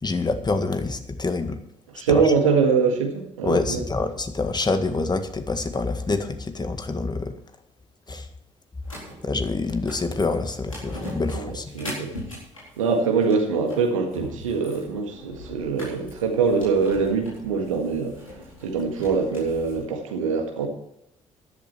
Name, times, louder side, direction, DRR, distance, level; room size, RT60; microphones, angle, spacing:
voice 1, 0.0-1.6 2.1-2.3 3.4-7.3 8.1-8.3 9.2-11.7, left 3 dB, 25° left, 8 dB, 1.9 m, -26 dB
voice 2, 1.9-3.8 11.3-12.1 12.8-18.1 18.6-20.7, right 5 dB, 80° right, 4 dB, 1.8 m, -23 dB
sound 1, 8.8-19.8, left 1 dB, 90° left, 4.1 m, -41 dB
14.0 x 12.0 x 4.5 m, 0.80 s
figure-of-eight pair, 45°, 17 cm